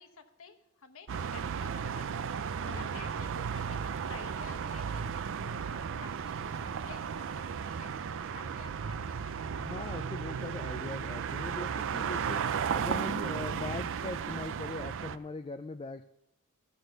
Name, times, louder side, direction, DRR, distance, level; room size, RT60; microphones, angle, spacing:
voice 1, 0.0-5.2 5.5-7.3 7.6-10.0, left 5 dB, 65° left, 7 dB, 1.2 m, -52 dB
sound 1, 1.1-15.2, right 7 dB, 60° right, 0.5 m, -35 dB
voice 2, 9.6-12.4 12.7-16.1, left 3 dB, 25° left, 8 dB, 0.4 m, -41 dB
14.0 x 6.4 x 6.6 m, 0.89 s
head